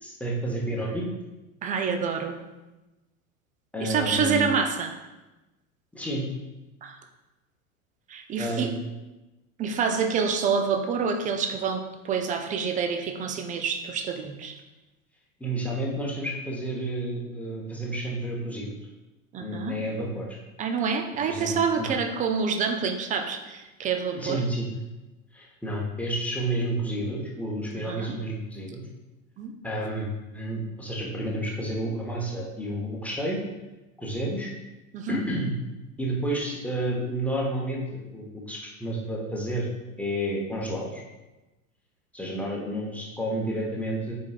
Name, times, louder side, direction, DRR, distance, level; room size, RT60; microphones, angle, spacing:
voice 1, 0.0-1.0 3.7-4.5 5.9-6.3 8.4-8.7 15.4-18.7 19.4-20.4 21.3-21.9 24.1-24.7 25.3-28.8 29.6-33.4 34.0-34.5 35.1-35.5 36.0-39.7 40.0-41.0 42.1-44.1, right 1 dB, 5° left, -3 dB, 1.1 m, -30 dB
voice 2, 1.6-2.4 3.8-5.0 6.8-7.0 8.1-8.7 9.6-14.6 19.3-19.8 20.6-24.4 27.7-28.2 29.4-29.5 34.9-35.2, right 6 dB, 20° right, 6 dB, 0.5 m, -27 dB
9.3 x 4.4 x 2.5 m, 1.1 s
figure-of-eight pair, 80°, 41 cm